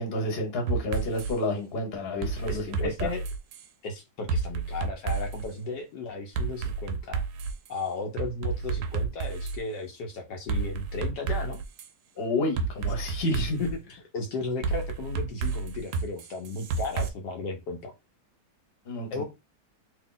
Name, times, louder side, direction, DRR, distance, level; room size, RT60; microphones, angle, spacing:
voice 1, 0.0-3.1 12.2-13.6 18.9-19.2, left 2 dB, 40° left, 1.1 m, -30 dB
sound 1, 0.7-1.3 2.2-3.7 4.3-5.5 6.3-7.7 8.2-9.6 10.5-11.9 12.6-13.7 14.6-17.1, right 5 dB, 70° right, 1.0 m, -30 dB
voice 2, 2.4-3.2 3.8-7.2 7.7-11.6 13.6-17.9 19.1-19.2, left 3 dB, 75° left, 1.2 m, -35 dB
2.9 x 2.7 x 3.9 m
omnidirectional pair, 1.9 m